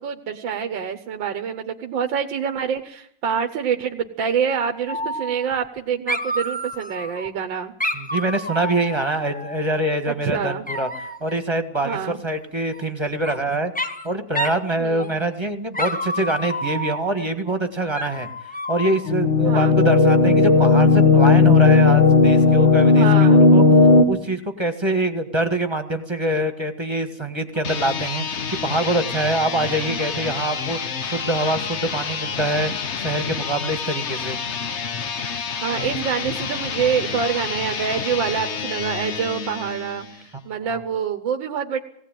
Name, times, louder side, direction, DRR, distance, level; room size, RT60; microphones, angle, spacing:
voice 1, 0.0-7.7 10.1-10.6 11.8-12.2 14.8-15.1 19.4-19.8 22.9-23.4 35.6-41.8, right 7 dB, 85° right, 4 dB, 1.8 m, -26 dB
Dog, 4.9-5.8 6.1-7.3 7.8-9.9 10.7-11.3 12.7-13.4 13.7-14.1 14.3-14.6 15.0-15.4 15.7-17.2 17.9-19.2, equal, 5° left, 0.7 m, -29 dB
voice 2, 7.9-10.9 11.2-18.3 18.7-23.6 24.1-30.8 31.0-32.7 33.0-34.4 40.7-40.8, right 1 dB, 15° right, 7 dB, 1.6 m, -24 dB
sound 1, 19.1-24.0, left 4 dB, 80° left, 2.7 m, -14 dB
sound 2, 27.5-40.3, left 6 dB, 45° left, 1.1 m, -29 dB
19.0 x 17.0 x 9.1 m, 0.69 s
omnidirectional pair, 2.0 m